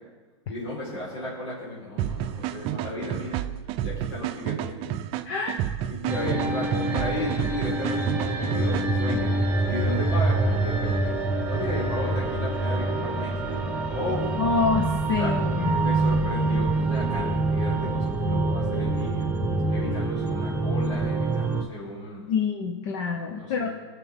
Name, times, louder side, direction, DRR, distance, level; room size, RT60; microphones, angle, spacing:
voice 1, 0.5-3.4 3.8-5.0 5.9-9.3 9.7-11.1 11.4-14.4 15.2-15.3 15.8-19.2 19.7-22.3 23.3-23.7, left 1 dB, 90° left, -7 dB, 4.4 m, -34 dB
sound 1, 2.0-9.2, right 11 dB, 40° right, 0.5 m, -31 dB
voice 2, 5.2-5.6 14.4-16.1 22.3-23.8, left 5 dB, 55° left, 3 dB, 1.0 m, -27 dB
sound 2, 6.1-21.6, right 2 dB, 10° right, 1.2 m, -26 dB
20.0 x 7.5 x 3.7 m, 1.3 s
hypercardioid pair, 130°, 15 cm